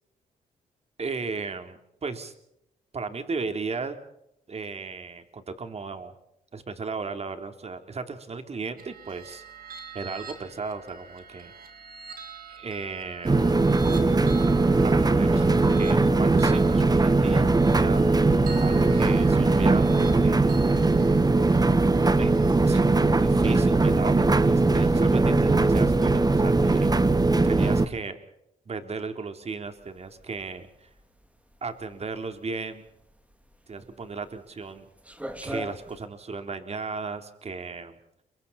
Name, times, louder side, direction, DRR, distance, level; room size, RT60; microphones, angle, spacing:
voice 1, 1.0-2.3 2.9-4.0 4.5-6.1 6.5-9.4 9.9-11.5 12.5-13.5 14.8-20.5 22.2-26.9 27.4-28.2 28.7-30.9 31.6-32.8 33.7-34.9 35.4-38.0, right 4 dB, 45° right, 7 dB, 3.5 m, -35 dB
sound 1, 8.8-22.9, right 5 dB, 70° right, 6.3 m, -44 dB
sound 2, 13.2-27.9, right 3 dB, 25° right, 1.5 m, -20 dB
sound 3, 29.7-36.1, equal, 10° right, 3.6 m, -41 dB
30.0 x 24.0 x 4.3 m, 0.78 s
cardioid pair, 80°, 15 cm